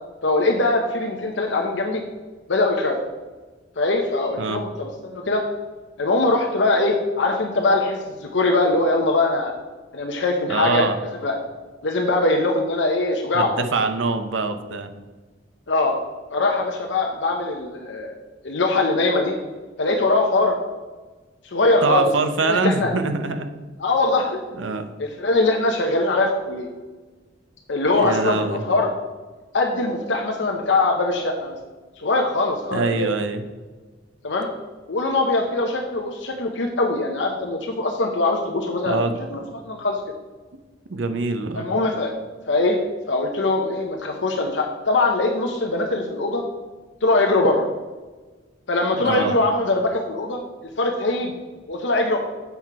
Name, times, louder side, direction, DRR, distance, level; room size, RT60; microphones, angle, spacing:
voice 1, 0.2-2.0 2.5-3.0 3.8-5.4 6.0-9.5 9.9-10.8 11.2-11.4 11.8-13.5 15.7-16.0 16.3-18.2 18.4-19.3 19.8-20.6 21.4-22.1 22.4-22.9 23.8-24.4 25.0-26.7 27.7-28.9 29.5-31.6 32.0-33.1 34.2-34.5 34.9-39.0 39.3-40.0 41.6-42.2 42.5-42.8 43.1-46.4 47.0-47.7 48.7-50.4 50.8-51.3 51.7-52.2, left 2 dB, 70° left, 1 dB, 0.8 m, -22 dB
voice 2, 10.5-11.0 13.3-14.9 21.8-23.5 24.6-24.9 27.9-28.6 32.7-33.4 38.8-39.2 40.9-41.7 48.9-49.4, right 3 dB, 85° right, 8 dB, 0.8 m, -24 dB
7.0 x 5.8 x 4.7 m, 1.3 s
head